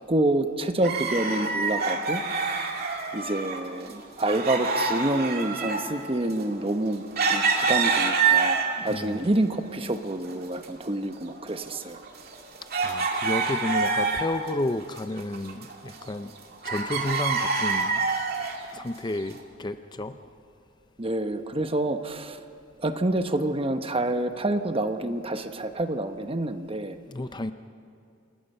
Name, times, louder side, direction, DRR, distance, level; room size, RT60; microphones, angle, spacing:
voice 1, 0.1-2.2 3.1-7.0 7.3-8.6 8.8-12.0 21.0-22.4 22.8-27.0, right 1 dB, 30° right, 8 dB, 1.0 m, -27 dB
sound 1, 0.8-3.6 3.9-8.9 9.4-10.3 10.6-10.7 11.3-14.5 14.8-16.4 16.6-18.6 19.2-19.3, right 4 dB, 50° right, 2.4 m, -26 dB
voice 2, 8.8-9.3 12.8-16.3 16.6-18.1 18.7-20.2 27.1-27.5, left 1 dB, 20° left, 10 dB, 0.5 m, -31 dB
28.0 x 20.5 x 5.5 m, 2.4 s
head